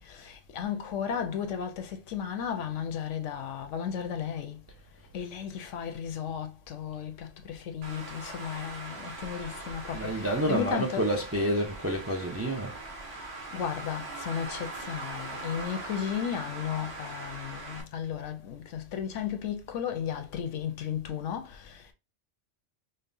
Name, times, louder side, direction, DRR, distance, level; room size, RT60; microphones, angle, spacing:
voice 1, 0.1-4.6 5.1-11.1 13.5-21.9, left 8 dB, 85° left, 1.0 m, -34 dB
Traffic noise roadway noise, 7.8-17.8, right 2 dB, 60° right, 1.3 m, -41 dB
voice 2, 9.9-12.7, right 1 dB, 20° right, 0.3 m, -29 dB
5.3 x 2.1 x 2.5 m
omnidirectional pair, 1.2 m